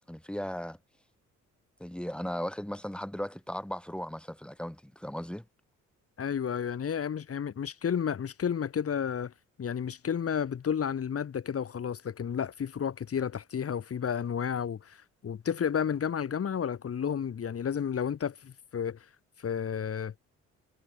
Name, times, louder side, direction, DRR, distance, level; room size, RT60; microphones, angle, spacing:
voice 1, 0.1-0.8 1.8-5.4, equal, 5° left, 7.4 m, -37 dB
voice 2, 6.2-9.3 9.6-19.1 19.4-20.1, left 8 dB, 50° left, 3.6 m, -32 dB
cardioid pair, 90°, 30 cm